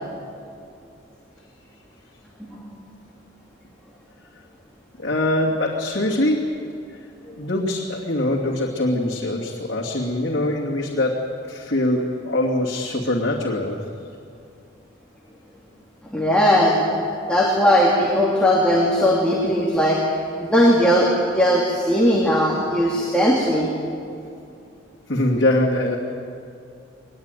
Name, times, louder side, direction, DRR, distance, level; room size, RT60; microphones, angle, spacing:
voice 1, 2.4-2.8 7.3-7.5 16.1-16.8 17.3-20.0 20.4-23.7, equal, 5° left, -4 dB, 2.6 m, -18 dB
voice 2, 5.0-6.6 6.9-7.0 7.4-13.8 25.1-25.9, left 1 dB, 60° left, -4 dB, 2.6 m, -23 dB
23.5 x 20.0 x 9.2 m, 2.5 s
head